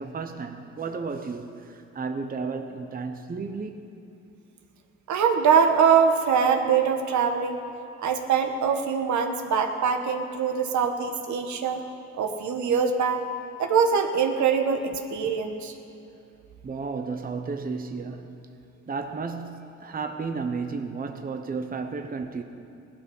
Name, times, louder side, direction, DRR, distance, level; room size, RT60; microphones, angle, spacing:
voice 1, 0.0-3.8 16.6-18.5 18.9-22.4, right 4 dB, 30° right, 0.9 m, -33 dB
voice 2, 5.1-7.6 8.0-11.8 12.1-13.2 13.6-15.7, right 6 dB, 70° right, 1.4 m, -23 dB
17.5 x 12.0 x 5.6 m
cardioid pair, 90°, 30 cm